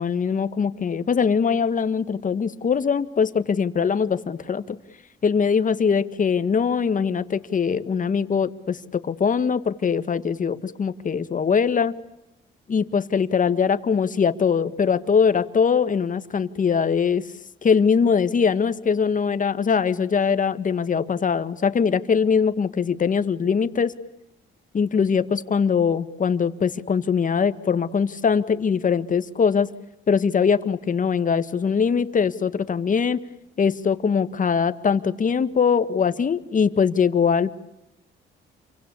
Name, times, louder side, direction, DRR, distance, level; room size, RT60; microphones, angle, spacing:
voice 1, 0.0-4.8 5.2-12.0 12.7-17.3 17.6-23.9 24.7-29.7 30.1-33.2 33.6-37.5, left 6 dB, 40° left, 12 dB, 1.7 m, -22 dB
28.5 x 24.0 x 8.5 m, 0.87 s
cardioid pair, 90°, 20 cm